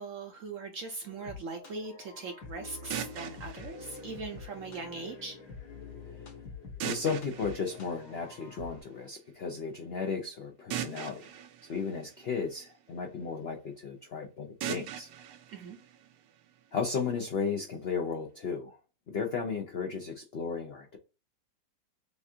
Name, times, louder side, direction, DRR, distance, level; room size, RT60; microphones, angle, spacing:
voice 1, 0.0-5.4 15.5-15.8, right 3 dB, 65° right, 0.8 m, -40 dB
sound 1, 1.0-8.8, left 4 dB, 65° left, 1.6 m, -47 dB
sound 2, 2.9-4.9 6.8-8.8 10.7-12.9 14.6-16.6, right 10 dB, 90° right, 1.4 m, -41 dB
voice 2, 6.8-11.4 11.7-15.1 16.7-18.8 19.1-21.0, left 5 dB, 85° left, 0.5 m, -34 dB
6.8 x 2.4 x 2.7 m
omnidirectional pair, 2.0 m